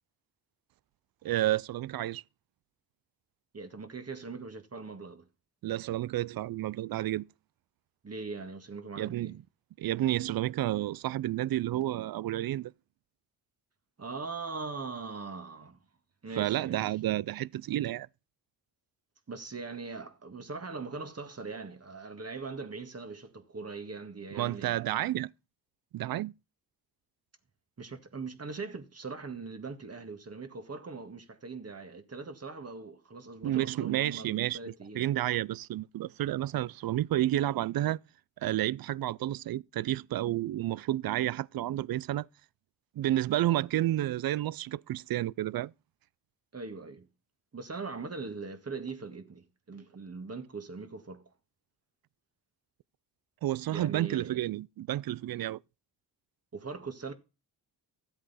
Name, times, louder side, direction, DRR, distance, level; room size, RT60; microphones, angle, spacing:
voice 1, 1.2-2.2 5.6-7.3 9.0-9.4 9.8-12.7 16.4-18.1 24.3-25.3 25.9-26.3 33.4-38.0 38.4-42.3 43.0-45.7 53.4-55.6, right 14 dB, 60° right, 0.5 m, -30 dB
voice 2, 3.5-5.2 8.0-9.4 14.0-15.8 16.2-16.9 19.3-24.8 27.8-35.3 46.5-47.1 47.5-51.2 53.7-54.5 56.5-57.1, right 4 dB, 35° right, 1.8 m, -41 dB
13.5 x 8.0 x 4.2 m
cardioid pair, 80°, 40 cm